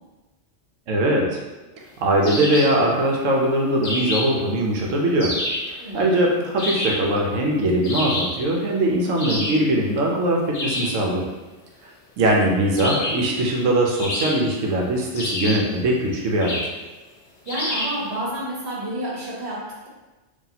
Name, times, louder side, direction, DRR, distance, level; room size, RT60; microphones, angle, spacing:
voice 1, 0.9-1.4 2.0-5.3 5.7-11.2 12.2-16.7, right 1 dB, 80° right, -1 dB, 1.1 m, -21 dB
sound 1, 2.2-2.8 3.8-4.4 5.2-5.7 6.6-7.1 7.8-8.4 9.2-9.7 10.5-11.0 12.8-13.3 14.0-14.6 15.1-15.7 16.4-16.8 17.5-18.0, left 1 dB, 50° left, 0.9 m, -27 dB
voice 2, 5.8-6.3 10.8-11.1 17.4-19.9, right 1 dB, 60° right, -6 dB, 1.3 m, -30 dB
3.9 x 2.7 x 2.8 m, 1.1 s
omnidirectional pair, 1.3 m